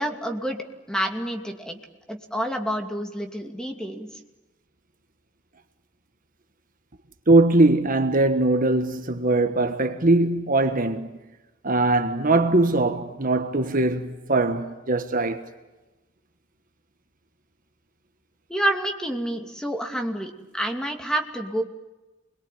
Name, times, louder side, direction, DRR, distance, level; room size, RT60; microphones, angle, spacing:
voice 1, 0.0-1.8 2.1-4.1 18.5-21.6, right 1 dB, 5° left, 2.6 m, -28 dB
voice 2, 7.3-11.1 11.6-15.5, right 2 dB, 45° right, 1.5 m, -21 dB
28.0 x 22.0 x 9.3 m
head